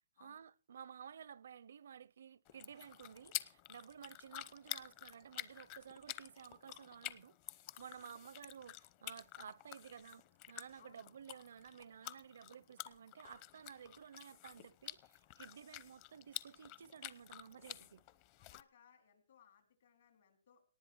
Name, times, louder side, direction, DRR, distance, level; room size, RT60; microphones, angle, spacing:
voice 1, 0.2-7.4 7.8-18.0, right 8 dB, 75° right, 0.6 m, -54 dB
sound 1, 2.4-18.6, left 14 dB, 35° left, 0.7 m, -50 dB
voice 2, 10.8-11.1 18.4-20.6, left 8 dB, 65° left, 3.8 m, -66 dB
19.0 x 10.5 x 4.6 m
hypercardioid pair, 160°, 0 cm